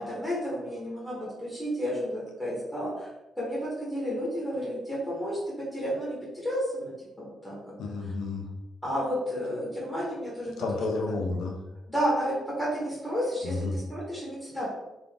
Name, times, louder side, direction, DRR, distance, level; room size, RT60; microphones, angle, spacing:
voice 1, 0.0-3.1 3.4-6.9 7.2-7.7 8.8-10.8 11.9-14.7, equal, 10° left, -6 dB, 1.0 m, -31 dB
voice 2, 7.8-8.5 10.6-11.6 13.4-13.8, left 3 dB, 85° left, 2 dB, 0.6 m, -31 dB
3.5 x 2.4 x 3.5 m, 1.0 s
cardioid pair, 130°, 0 cm